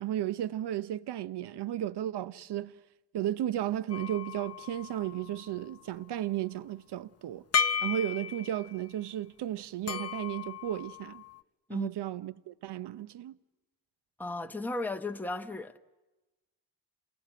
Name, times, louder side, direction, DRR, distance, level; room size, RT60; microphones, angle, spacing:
voice 1, 0.0-2.7 3.1-7.4 7.8-11.2 11.7-13.4, right 12 dB, 55° right, 0.8 m, -34 dB
sound 1, 3.9-5.6 7.5-8.8 9.9-11.4, left 6 dB, 30° left, 0.8 m, -34 dB
voice 2, 14.2-15.8, left 2 dB, 5° left, 1.0 m, -35 dB
28.0 x 17.5 x 7.7 m
supercardioid pair, 50°, 48 cm